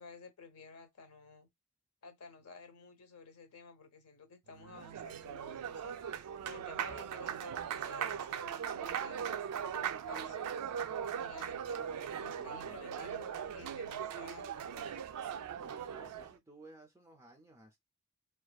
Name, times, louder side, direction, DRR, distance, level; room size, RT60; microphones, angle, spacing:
voice 1, 0.0-1.5 2.0-9.4 10.1-10.7 11.1-11.8 12.2-13.3 13.5-15.0, left 4 dB, 70° left, 0.7 m, -53 dB
Applause, 4.5-16.4, right 8 dB, 85° right, 0.3 m, -39 dB
voice 2, 12.3-12.8 15.6-17.8, right 2 dB, 10° right, 0.3 m, -56 dB
2.5 x 2.3 x 2.2 m
head